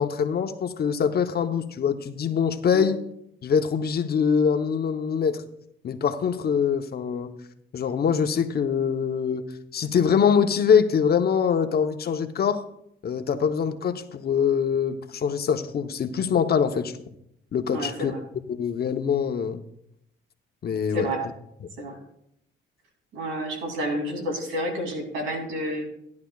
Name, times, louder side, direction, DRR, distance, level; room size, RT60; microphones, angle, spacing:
voice 1, 0.0-3.0 3.4-5.4 5.8-7.3 7.7-9.5 9.7-12.6 13.0-16.9 17.5-18.1 18.5-19.6 20.6-21.1, left 7 dB, 50° left, 7 dB, 0.9 m, -24 dB
voice 2, 17.7-18.2 20.9-21.2 21.8-22.0 23.1-25.8, equal, 85° right, 3 dB, 2.9 m, -30 dB
15.0 x 10.5 x 2.4 m, 0.75 s
cardioid pair, 90°, 20 cm